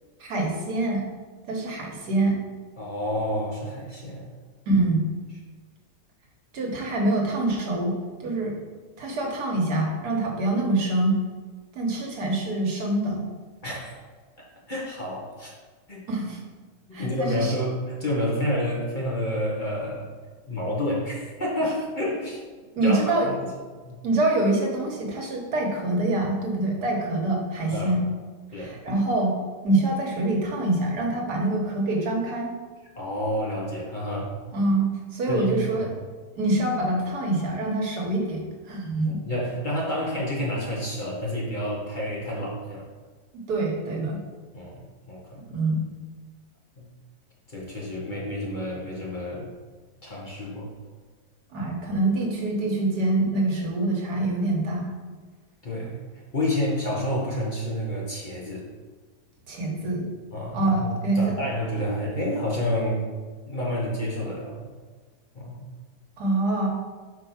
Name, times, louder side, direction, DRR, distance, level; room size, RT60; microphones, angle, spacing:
voice 1, 0.2-1.0 1.5-2.4 4.7-5.1 6.5-8.6 9.0-11.2 11.7-13.2 16.1-16.4 16.9-17.5 22.8-23.3 24.0-28.0 28.6-29.4 29.6-32.5 34.5-34.9 35.1-36.0 36.3-39.2 43.5-44.2 45.5-45.9 51.5-54.9 59.5-60.1 60.5-61.2 66.2-66.7, right 2 dB, 75° right, 0 dB, 1.7 m, -25 dB
voice 2, 2.8-4.3 13.6-13.9 14.7-15.5 15.9-16.0 17.0-20.1 20.5-22.4 22.8-23.4 23.8-24.0 27.7-28.0 28.5-28.7 33.0-34.4 35.3-35.9 39.0-42.8 44.5-45.4 46.8-46.9 47.5-49.5 50.0-50.7 55.6-58.7 60.3-63.1 63.5-64.7 65.3-65.6, left 1 dB, 30° left, -4 dB, 1.2 m, -29 dB
4.9 x 4.6 x 5.7 m, 1.4 s
omnidirectional pair, 1.7 m